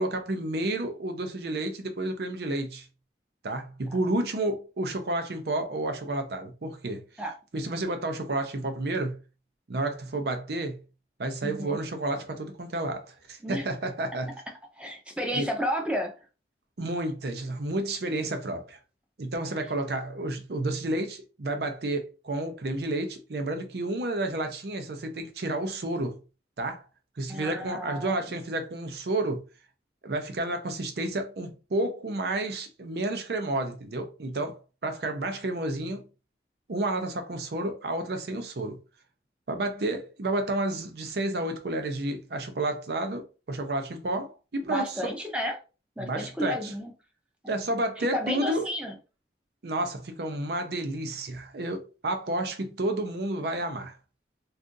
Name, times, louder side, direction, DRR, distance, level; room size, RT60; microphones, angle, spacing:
voice 1, 0.0-2.9 3.4-7.0 7.5-9.2 9.7-10.8 11.2-14.3 15.3-15.5 16.8-18.8 19.2-26.2 26.6-26.8 27.2-29.4 30.0-36.0 36.7-38.8 39.5-44.9 46.0-46.7 47.5-48.7 49.6-54.0, right 2 dB, 60° right, 0.6 m, -31 dB
voice 2, 11.4-11.8 13.4-13.7 14.8-16.1 27.3-28.3 44.7-45.6 46.0-46.9 48.0-48.9, equal, 5° right, 0.6 m, -32 dB
2.6 x 2.4 x 3.7 m
head